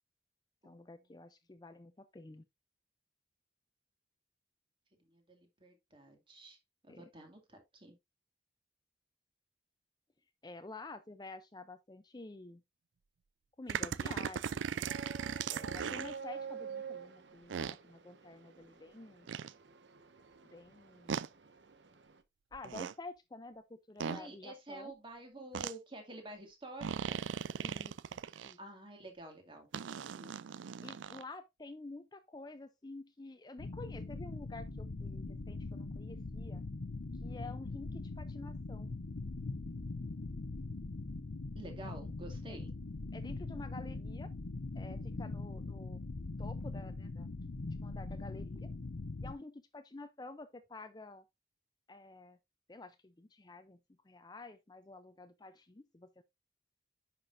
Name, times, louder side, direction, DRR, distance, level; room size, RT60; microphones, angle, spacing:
voice 1, 0.6-2.4 6.9-7.1 10.4-12.6 13.6-14.9 15.5-19.3 20.5-21.2 22.5-24.9 27.6-28.6 30.8-36.6 37.2-38.9 41.8-41.9 42.5-42.6 43.1-44.3 44.7-46.0 46.4-47.3 47.6-48.7 49.2-51.2 51.9-52.4 52.7-53.8 54.0-56.2, left 2 dB, 20° left, 0.5 m, -50 dB
voice 2, 5.0-6.6 6.8-8.0 24.0-27.2 28.6-29.7 30.0-30.3 41.6-42.7, right 1 dB, 25° right, 2.2 m, -50 dB
sound 1, 13.7-16.2 17.5-17.8 19.3-19.5 21.1-21.3 22.5-22.9 24.0-24.2 25.5-25.7 26.8-28.5 29.7-31.2, right 7 dB, 90° right, 0.4 m, -38 dB
sound 2, 14.9-22.2, right 6 dB, 75° right, 0.9 m, -49 dB
sound 3, 33.6-49.3, left 3 dB, 75° left, 0.7 m, -42 dB
9.9 x 5.9 x 2.6 m
head